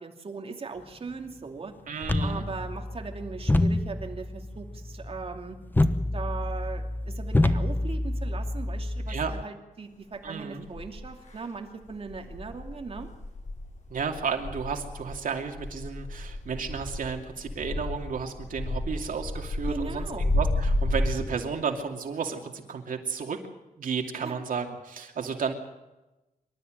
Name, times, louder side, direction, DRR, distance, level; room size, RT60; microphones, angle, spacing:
voice 1, 0.0-1.7 2.2-5.6 6.1-13.1 19.7-20.3 24.2-24.4, right 4 dB, 45° right, 3 dB, 2.7 m, -39 dB
voice 2, 1.9-2.4 9.1-9.3 10.2-10.7 13.9-20.0 20.3-23.4 23.8-25.5, right 6 dB, 75° right, 4 dB, 2.7 m, -32 dB
sound 1, 2.0-9.4, left 1 dB, 15° left, 1.0 m, -28 dB
sound 2, 10.1-10.2 10.7-11.4 11.8-21.1, left 1 dB, 60° left, 6.6 m, -31 dB
25.5 x 13.0 x 9.1 m, 1.0 s
wide cardioid pair, 125°, 14 cm